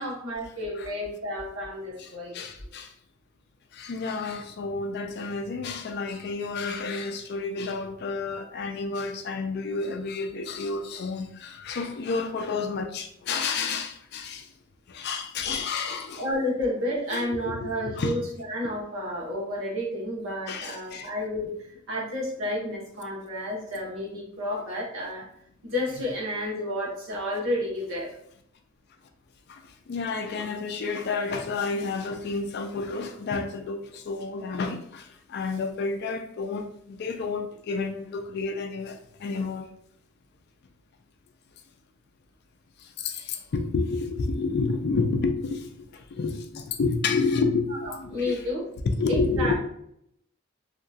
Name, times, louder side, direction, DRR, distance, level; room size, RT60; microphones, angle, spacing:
voice 1, 0.0-2.3 16.2-25.3 25.6-28.2 47.7-48.6 49.1-49.5, left 1 dB, 70° right, 1.1 m, -31 dB
voice 2, 2.0-2.9 3.7-14.5 14.9-16.2 17.1-18.1 20.5-21.1 29.5-39.7 42.8-48.4 48.9-49.5, left 4 dB, 50° left, 0.3 m, -30 dB
2.8 x 2.3 x 2.7 m
head